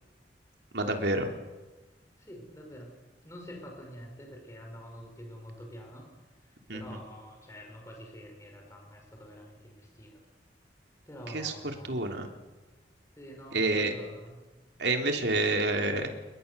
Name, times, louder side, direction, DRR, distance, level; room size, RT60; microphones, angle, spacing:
voice 1, 0.7-1.3 6.7-6.8 11.3-11.5 11.8-12.3 13.5-13.9 14.8-16.1, right 2 dB, 70° right, 4 dB, 3.3 m, -28 dB
voice 2, 2.2-2.9 3.2-10.2 11.1-12.0 13.2-14.4, equal, 15° left, 1 dB, 5.6 m, -47 dB
30.0 x 21.0 x 7.0 m, 1.2 s
head